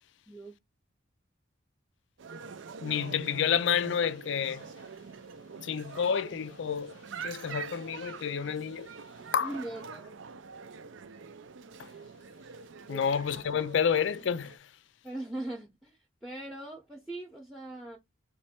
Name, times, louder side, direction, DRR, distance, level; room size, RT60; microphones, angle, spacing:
sound 1, 2.2-14.6, right 5 dB, 65° right, 0.5 m, -45 dB
voice 1, 2.8-4.6 5.6-6.9 7.2-8.9 9.3-9.5 11.8-11.9 12.9-14.6, left 7 dB, 60° left, 0.4 m, -29 dB
voice 2, 9.4-10.1 12.9-13.0 15.0-18.0, right 1 dB, ahead, 0.7 m, -40 dB
3.2 x 3.1 x 4.3 m
head